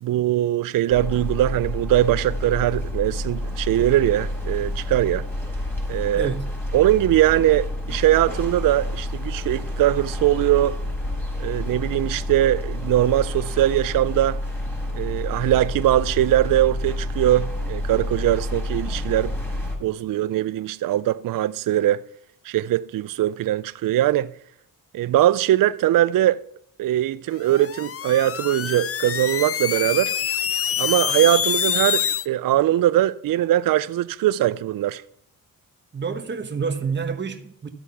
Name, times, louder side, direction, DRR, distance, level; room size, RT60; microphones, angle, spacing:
voice 1, 0.0-5.3 5.9-6.3 6.7-10.8 11.4-14.4 14.9-19.3 19.8-22.0 22.4-24.3 24.9-26.4 26.8-30.1 30.8-35.0, right 13 dB, 65° right, 0.5 m, -21 dB
sound 1, 0.9-19.8, left 1 dB, 5° left, 4.8 m, -29 dB
voice 2, 6.1-6.5 35.9-37.7, right 5 dB, 30° right, 1.2 m, -28 dB
sound 2, 27.4-32.3, left 9 dB, 40° left, 0.5 m, -25 dB
13.0 x 8.2 x 5.7 m
cardioid pair, 75°, 36 cm